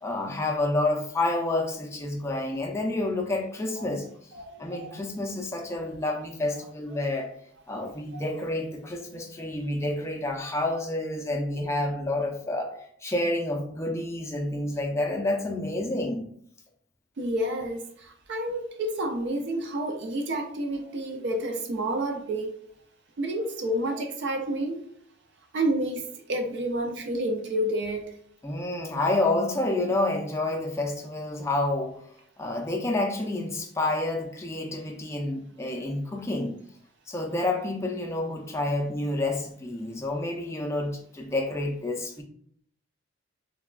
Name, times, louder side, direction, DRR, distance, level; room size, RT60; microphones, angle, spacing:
voice 1, 0.0-4.1 4.6-7.3 7.7-16.3 28.4-32.0 32.4-36.5 37.1-42.2, left 2 dB, 15° left, 1 dB, 0.4 m, -29 dB
voice 2, 4.4-5.0 8.1-8.2 17.2-22.6 23.2-24.8 25.5-28.2, right 1 dB, 60° right, 4 dB, 0.4 m, -30 dB
3.2 x 2.2 x 2.2 m, 0.64 s
head